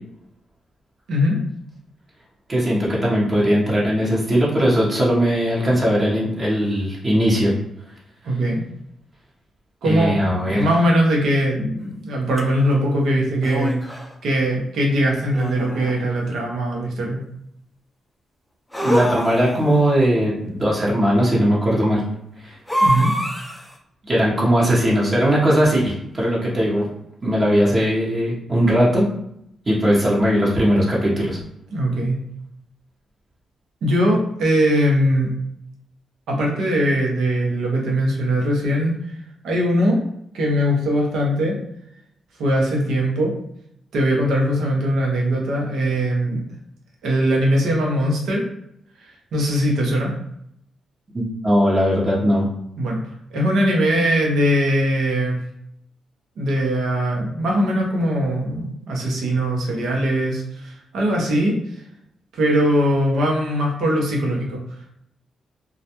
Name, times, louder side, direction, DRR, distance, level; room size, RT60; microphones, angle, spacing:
voice 1, 2.5-7.5 9.8-10.7 18.8-22.0 22.4-22.6 24.1-26.9 27.2-29.0 29.7-31.4 51.1-52.5, equal, 35° right, -5 dB, 0.8 m, -19 dB
voice 2, 8.2-8.6 9.8-13.8 14.2-17.2 22.8-23.1 31.7-32.2 33.8-35.3 36.3-38.9 39.4-40.0 40.3-41.6 42.4-43.3 43.9-46.4 47.0-48.4 49.0-50.1 52.8-53.0 53.3-55.4 56.4-61.6 62.3-64.6, equal, 80° right, -1 dB, 0.7 m, -20 dB
sound 1, 12.4-12.5 13.4-14.1 15.3-16.1 18.7-19.8 22.7-23.7, equal, 10° left, 0.5 m, -24 dB
2.3 x 2.1 x 2.8 m, 0.75 s
cardioid pair, 65°, 0 cm